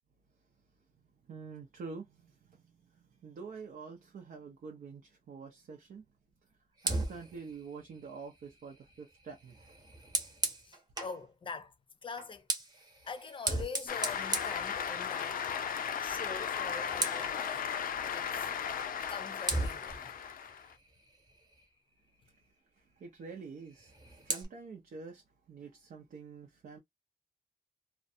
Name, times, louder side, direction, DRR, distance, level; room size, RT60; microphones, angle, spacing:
voice 1, 1.2-6.1 6.4-6.5 6.8-9.8 22.7-26.8, right 5 dB, 85° right, 0.6 m, -47 dB
Fire, 6.8-11.2 12.1-15.4 15.7-16.0 16.3-17.4 18.8-18.9 19.5-21.8 23.7-24.5, right 2 dB, 30° right, 0.8 m, -38 dB
voice 2, 10.6-11.7 12.0-12.5 13.0-15.4 16.0-17.6 18.1-18.5 19.1-20.1, left 5 dB, 35° left, 0.5 m, -44 dB
Cheering / Applause, 13.9-20.7, left 8 dB, 85° left, 0.4 m, -36 dB
2.5 x 2.2 x 2.6 m
wide cardioid pair, 130°, 14 cm